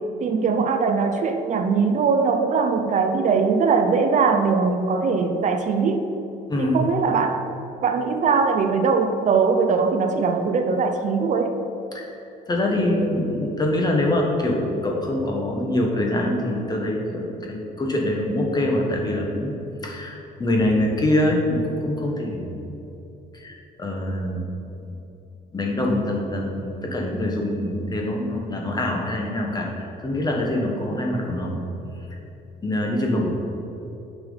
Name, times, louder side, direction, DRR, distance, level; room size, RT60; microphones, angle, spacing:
voice 1, 0.0-6.1 6.6-7.5 7.8-11.5, right 5 dB, 45° right, 6 dB, 0.6 m, -21 dB
voice 2, 6.5-6.8 11.9-12.1 12.5-19.5 19.8-22.5 23.3-24.4 24.9-25.0 25.5-31.6 32.6-33.3, left 1 dB, 25° left, 0 dB, 1.4 m, -24 dB
9.0 x 5.8 x 4.1 m, 2.9 s
cardioid pair, 110°, 17 cm